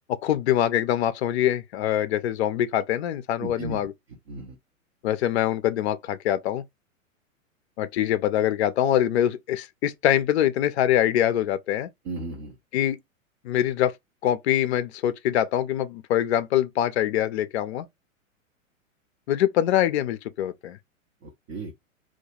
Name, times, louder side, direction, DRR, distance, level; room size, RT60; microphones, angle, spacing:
voice 1, 0.1-3.9 5.0-6.6 7.8-11.9 12.7-13.0 13.4-13.9 14.2-17.9 19.3-20.8, left 11 dB, 55° left, 0.4 m, -24 dB
voice 2, 3.4-3.8 4.3-4.6 12.0-12.6 21.2-21.8, right 2 dB, 20° right, 0.3 m, -35 dB
2.2 x 2.2 x 2.8 m
figure-of-eight pair, 105°, 40 cm